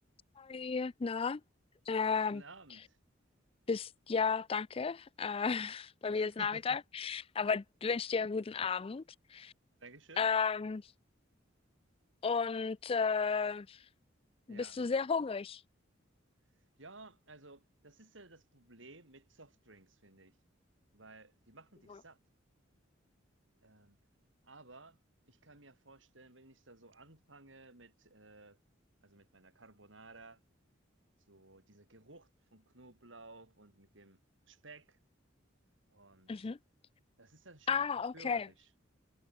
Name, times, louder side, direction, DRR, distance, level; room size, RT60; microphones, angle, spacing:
voice 1, 0.4-1.4 1.9-2.4 3.7-9.0 9.3-9.5 10.2-10.8 12.2-13.8 14.5-15.6 36.3-36.6 37.7-38.5, left 5 dB, 30° left, 0.4 m, -33 dB
voice 2, 2.3-3.0 6.1-6.8 9.8-10.3 14.5-14.8 16.8-20.4 20.9-22.2 23.6-24.0 24.4-25.0 25.3-28.6 29.0-30.4 31.3-35.0 35.9-36.5 37.2-37.9 38.1-38.7, right 2 dB, 75° right, 6.8 m, -56 dB
head